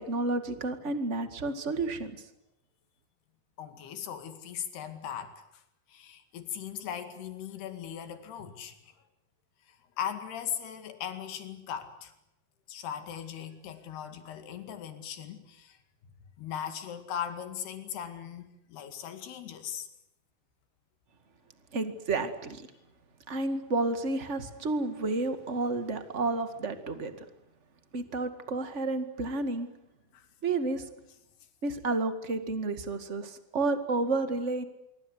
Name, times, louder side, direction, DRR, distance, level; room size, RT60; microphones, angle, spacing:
voice 1, 0.0-2.1 21.7-22.7 23.3-27.2 27.9-29.7 30.4-30.9 31.6-34.6, right 3 dB, 30° right, 9 dB, 1.3 m, -31 dB
voice 2, 3.6-5.6 5.9-8.9 9.7-12.1 12.7-15.8 16.4-19.9 30.1-30.3, left 9 dB, 85° left, 9 dB, 4.2 m, -39 dB
25.5 x 24.0 x 8.1 m, 0.83 s
omnidirectional pair, 4.5 m